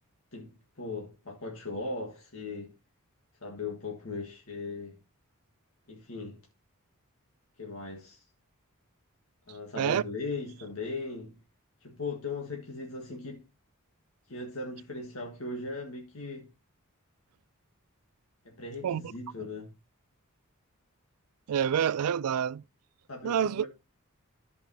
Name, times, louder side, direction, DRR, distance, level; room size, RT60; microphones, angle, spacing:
voice 1, 0.3-2.7 3.4-5.0 5.9-6.4 7.6-8.2 9.5-11.4 11.8-13.4 14.3-16.5 18.5-19.7 23.1-23.7, left 3 dB, 70° left, 1.8 m, -38 dB
voice 2, 21.5-22.6 23.2-23.7, right 8 dB, 85° right, 0.4 m, -27 dB
14.0 x 5.4 x 2.9 m
head